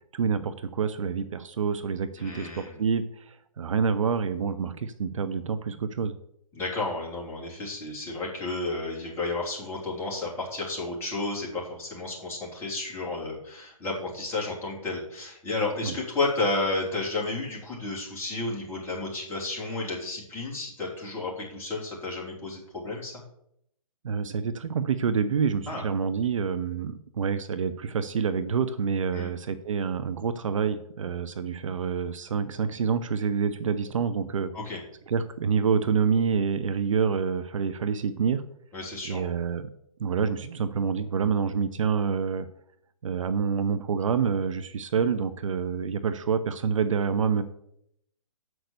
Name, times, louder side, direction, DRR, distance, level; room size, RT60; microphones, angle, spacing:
voice 1, 0.1-6.1 15.8-16.0 24.0-34.5 35.1-38.4 39.1-39.7 40.0-42.5 43.0-47.4, right 6 dB, 55° right, 11 dB, 0.7 m, -27 dB
voice 2, 2.2-2.8 6.5-23.1 25.7-25.8 29.1-29.3 34.5-34.8 38.7-39.3, left 2 dB, 10° left, -6 dB, 3.3 m, -32 dB
7.8 x 6.2 x 6.7 m, 0.74 s
hypercardioid pair, 145°, 19 cm